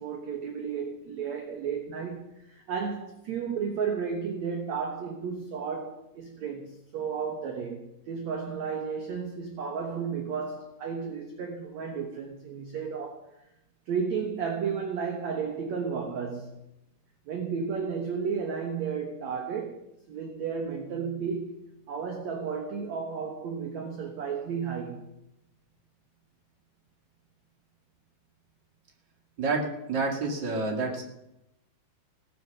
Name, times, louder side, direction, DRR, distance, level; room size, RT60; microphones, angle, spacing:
voice 1, 0.0-13.3 13.9-16.6 17.3-21.6 21.9-25.1, right 6 dB, 60° right, 2.0 m, -33 dB
voice 2, 29.4-31.0, right 3 dB, 30° right, 2.4 m, -29 dB
17.5 x 9.3 x 6.8 m
omnidirectional pair, 4.8 m